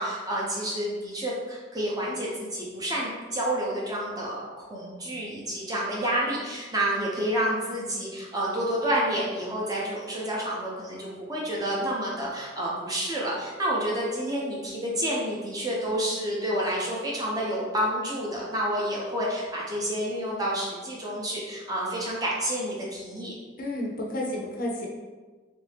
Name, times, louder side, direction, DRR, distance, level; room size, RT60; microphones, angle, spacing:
voice 1, 0.0-4.4 4.7-23.3, right 1 dB, 20° right, -5 dB, 0.6 m, -29 dB
voice 2, 23.6-24.9, left 1 dB, 45° left, -2 dB, 0.5 m, -31 dB
3.1 x 2.6 x 3.3 m, 1.4 s
head